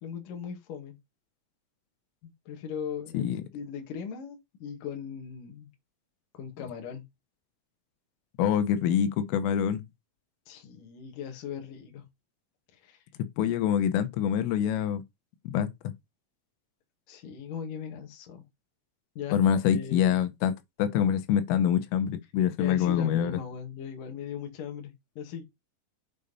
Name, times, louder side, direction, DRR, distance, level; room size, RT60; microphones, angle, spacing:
voice 1, 0.0-1.0 2.2-5.7 6.3-7.0 10.5-12.1 12.7-13.0 17.1-18.4 19.1-20.2 22.6-25.4, left 7 dB, 55° left, 3.0 m, -39 dB
voice 2, 8.4-9.8 13.4-15.0 15.5-15.7 19.3-20.5 20.8-23.4, left 9 dB, 85° left, 3.6 m, -25 dB
8.3 x 4.9 x 5.5 m
omnidirectional pair, 5.6 m